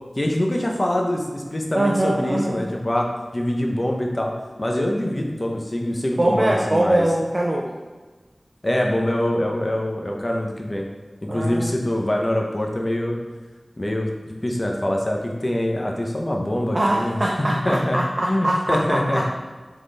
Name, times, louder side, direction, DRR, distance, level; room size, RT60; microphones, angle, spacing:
voice 1, 0.2-7.1 8.6-10.9 11.2-13.2 13.8-14.1 14.4-18.0 18.3-19.2, left 1 dB, 40° left, 1 dB, 0.7 m, -24 dB
voice 2, 1.7-2.6 6.2-7.6 11.3-11.8 16.7-19.3, right 1 dB, 50° right, -2 dB, 0.5 m, -22 dB
3.8 x 3.7 x 3.4 m, 1.3 s
wide cardioid pair, 45°, 0 cm